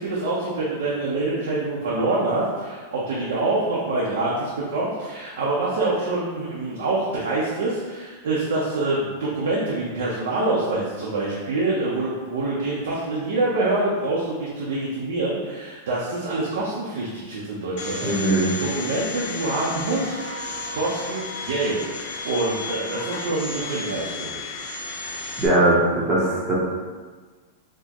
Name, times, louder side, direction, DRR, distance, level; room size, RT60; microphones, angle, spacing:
voice 1, 0.0-18.2 18.6-24.5, right 2 dB, 85° right, -6 dB, 0.7 m, -26 dB
Domestic sounds home sounds, 17.8-25.5, left 3 dB, 50° left, 0.5 m, -33 dB
voice 2, 18.0-18.5 25.4-26.6, right 1 dB, 15° right, -7 dB, 0.8 m, -20 dB
4.3 x 2.1 x 2.9 m, 1.4 s
supercardioid pair, 155°, 0 cm